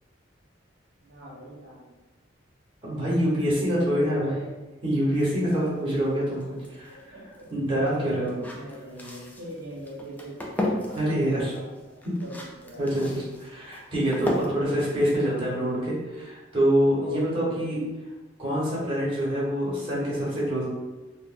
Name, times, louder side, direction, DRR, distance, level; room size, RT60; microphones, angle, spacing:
voice 1, 1.0-1.9 3.4-4.5 6.9-7.4 8.2-13.1 14.9-15.2 16.9-17.6, right 1 dB, 55° right, -8 dB, 1.0 m, -42 dB
voice 2, 2.8-4.3 4.8-6.9 7.5-8.3 10.9-11.5 12.0-12.2 12.8-13.0 13.5-17.8 18.4-20.6, equal, 30° right, -8 dB, 1.1 m, -25 dB
sound 1, 5.1-16.0, left 1 dB, 10° left, 0.3 m, -36 dB
2.6 x 2.1 x 3.7 m, 1.2 s
head